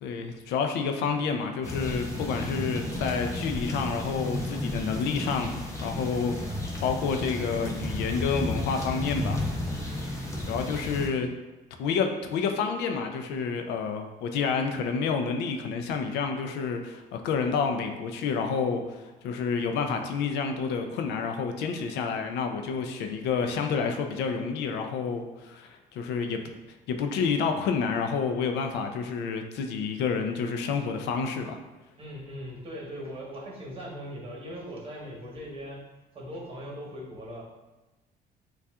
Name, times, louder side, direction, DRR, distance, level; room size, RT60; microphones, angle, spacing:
voice 1, 0.0-9.4 9.9-10.1 10.5-11.3 11.8-26.4 26.9-31.6, left 5 dB, 85° left, 5 dB, 0.5 m, -29 dB
sound 1, 1.6-11.1, left 1 dB, 15° left, 0.8 m, -33 dB
voice 2, 32.0-35.8 36.1-37.4, equal, 35° right, -3 dB, 1.2 m, -39 dB
6.7 x 2.4 x 2.4 m, 1.1 s
cardioid pair, 110°, 17 cm